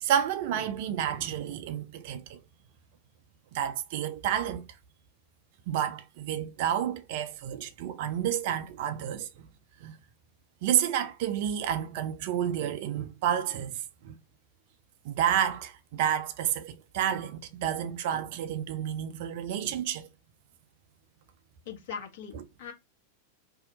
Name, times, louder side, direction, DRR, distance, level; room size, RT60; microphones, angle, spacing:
voice 1, 0.0-2.4 3.5-4.7 5.7-9.5 9.8-10.0 10.6-14.2 15.0-20.1 22.3-22.4, right 10 dB, 50° right, 0.4 m, -30 dB
voice 2, 21.7-22.7, left 7 dB, 55° left, 1.1 m, -40 dB
2.7 x 2.0 x 3.8 m
figure-of-eight pair, 90°, 0 cm